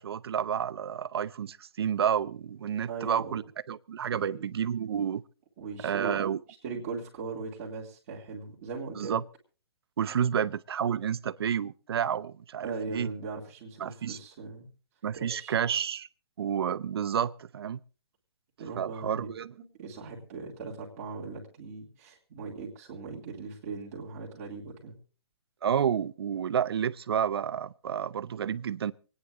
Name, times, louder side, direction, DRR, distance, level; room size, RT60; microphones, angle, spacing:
voice 1, 0.0-3.4 3.7-5.2 5.8-6.4 9.0-9.2 10.0-13.1 13.8-14.2 15.0-16.1 16.4-17.8 18.7-19.5 25.6-28.9, right 8 dB, 60° right, 0.7 m, -30 dB
voice 2, 2.9-3.4 4.1-4.4 5.6-6.3 6.6-9.2 12.6-14.7 15.1-15.6 18.6-19.3 19.8-24.9, right 4 dB, 35° right, 2.7 m, -39 dB
26.5 x 9.7 x 3.6 m
hypercardioid pair, 165°, 14 cm